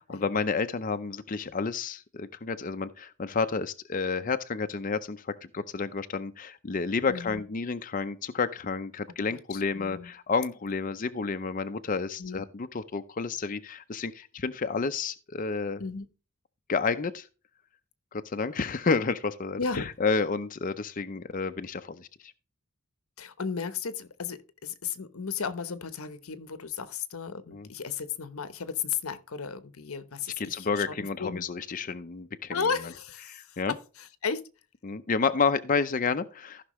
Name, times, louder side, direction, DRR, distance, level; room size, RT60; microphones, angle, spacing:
voice 1, 0.0-15.8 16.7-17.3 18.1-22.3 27.5-27.7 30.4-32.6 33.3-33.7 34.8-36.6, left 4 dB, 40° left, 0.5 m, -30 dB
voice 2, 7.1-7.4 9.3-10.1 12.2-12.4 15.8-16.1 19.6-19.9 23.2-31.4 32.5-33.6 34.0-34.4, left 6 dB, 90° left, 0.9 m, -34 dB
15.0 x 5.9 x 3.1 m
head